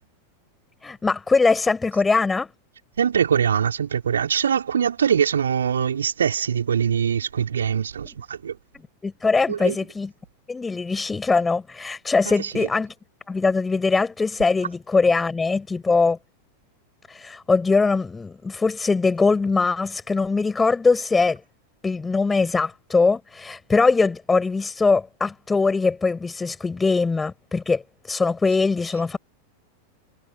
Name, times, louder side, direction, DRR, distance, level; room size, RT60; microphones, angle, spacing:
voice 1, 0.8-2.5 8.0-8.1 9.0-10.1 10.5-12.9 13.3-16.2 17.1-21.4 21.8-27.8 28.1-29.2, left 4 dB, 10° left, 7.5 m, -21 dB
voice 2, 3.0-8.5 9.5-9.7 12.4-12.7, right 8 dB, 70° right, 4.4 m, -23 dB
figure-of-eight pair, 90°, 0 cm